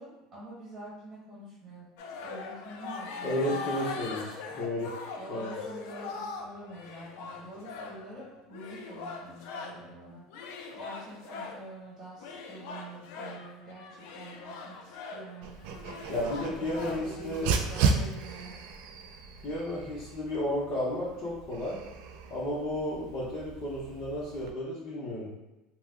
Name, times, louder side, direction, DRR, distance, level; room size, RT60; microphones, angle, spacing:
voice 1, 0.0-1.9 2.2-3.7 5.2-10.3 10.7-15.6 16.1-18.6, right 1 dB, 20° right, -7 dB, 1.2 m, -46 dB
sound 1, 2.0-9.9 10.3-11.7 12.2-17.2, left 4 dB, 75° left, 0.4 m, -41 dB
voice 2, 3.2-4.9 5.3-5.6 16.1-17.6 19.4-21.8 22.3-25.3, left 1 dB, 40° left, -9 dB, 0.9 m, -33 dB
Dog, 15.4-24.5, right 5 dB, 70° right, 0.3 m, -35 dB
2.9 x 2.2 x 3.5 m, 0.98 s
supercardioid pair, 130°, 0 cm